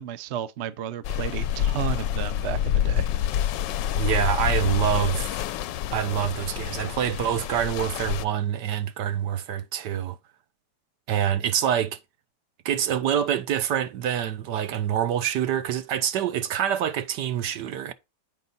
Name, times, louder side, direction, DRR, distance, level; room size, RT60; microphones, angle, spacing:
voice 1, 0.0-3.1, right 10 dB, 60° right, 0.7 m, -32 dB
sound 1, 1.0-8.2, left 10 dB, 85° left, 1.3 m, -27 dB
voice 2, 3.9-5.4 5.9-10.2 11.1-12.0 12.6-17.9, right 9 dB, 75° right, 1.4 m, -26 dB
8.4 x 5.3 x 3.9 m
omnidirectional pair, 1.9 m